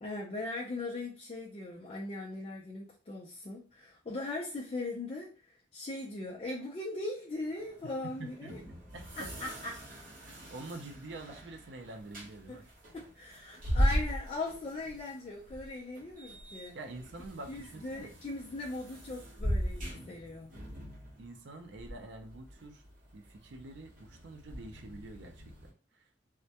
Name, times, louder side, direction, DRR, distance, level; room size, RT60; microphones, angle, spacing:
voice 1, 0.0-5.3 5.7-8.6 9.2-9.7 12.5-12.6 12.9-16.8 17.5-20.5, left 2 dB, 30° left, -5 dB, 0.4 m, -39 dB
sound 1, 7.4-25.7, equal, 45° right, 0.9 m, -39 dB
voice 2, 8.2-8.5 8.9-9.3 10.2-12.7 16.7-18.1 21.2-22.8 23.1-26.3, right 2 dB, 75° right, 5 dB, 0.4 m, -47 dB
2.2 x 2.1 x 2.7 m, 0.36 s
head